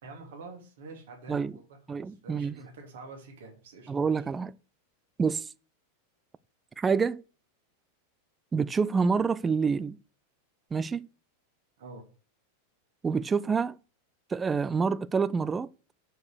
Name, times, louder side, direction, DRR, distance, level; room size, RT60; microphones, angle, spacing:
voice 1, 0.0-4.2 11.8-12.0, right 3 dB, 60° right, 2.9 m, -47 dB
voice 2, 1.9-2.5 3.9-4.5 5.2-5.5 6.8-7.2 8.5-10.0 10.7-11.1 13.0-13.8 14.3-15.7, right 5 dB, 15° right, 0.4 m, -27 dB
6.7 x 6.7 x 6.6 m
figure-of-eight pair, 90°, 0 cm